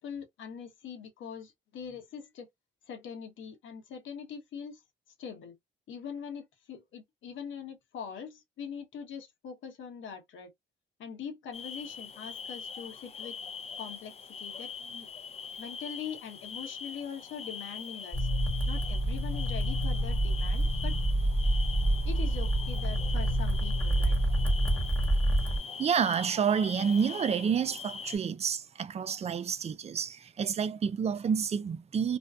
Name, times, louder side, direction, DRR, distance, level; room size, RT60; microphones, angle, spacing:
voice 1, 0.0-2.5 2.9-4.8 5.2-5.6 5.9-10.5 11.0-13.4 13.8-15.1 15.6-18.3 18.7-21.0 22.0-24.2, left 7 dB, 75° left, 1.0 m, -42 dB
sound 1, 11.5-28.2, left 6 dB, 30° left, 0.6 m, -42 dB
sound 2, 18.1-25.6, right 1 dB, 5° left, 1.3 m, -27 dB
voice 2, 25.8-32.2, right 7 dB, 35° right, 0.4 m, -29 dB
2.6 x 2.1 x 2.3 m
cardioid pair, 90°, 20 cm